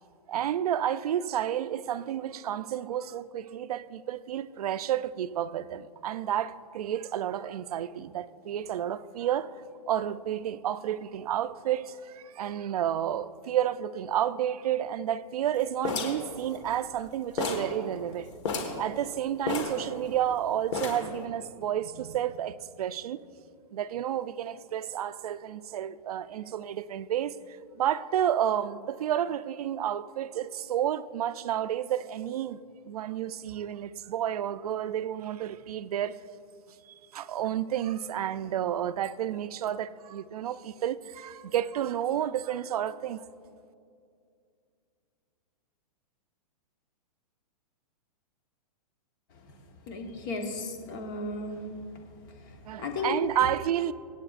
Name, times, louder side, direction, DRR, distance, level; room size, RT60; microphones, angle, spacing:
voice 1, 0.3-9.5 9.9-18.3 18.8-23.2 23.7-27.4 27.8-36.2 36.9-43.3 52.7-53.9, right 10 dB, 70° right, 0.5 m, -31 dB
sound 1, 15.8-17.1 17.4-17.8 18.0-18.1 18.4-18.8 19.5-20.3 20.7-21.2, left 4 dB, 45° left, 1.6 m, -32 dB
voice 2, 49.9-51.6 52.5-53.2, left 3 dB, 30° left, 1.2 m, -35 dB
25.0 x 8.5 x 2.5 m
hypercardioid pair, 175°, 20 cm